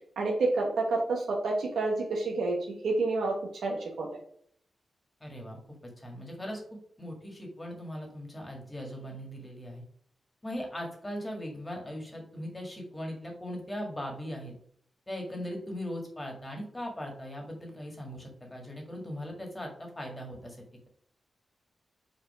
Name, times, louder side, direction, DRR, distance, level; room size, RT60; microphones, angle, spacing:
voice 1, 0.2-3.3 3.6-4.1, right 3 dB, 85° right, -1 dB, 1.2 m, -29 dB
voice 2, 5.2-9.8 10.4-14.5 15.1-20.6, equal, 15° left, 1 dB, 1.8 m, -39 dB
5.1 x 4.3 x 4.9 m, 0.63 s
wide cardioid pair, 115°, 0 cm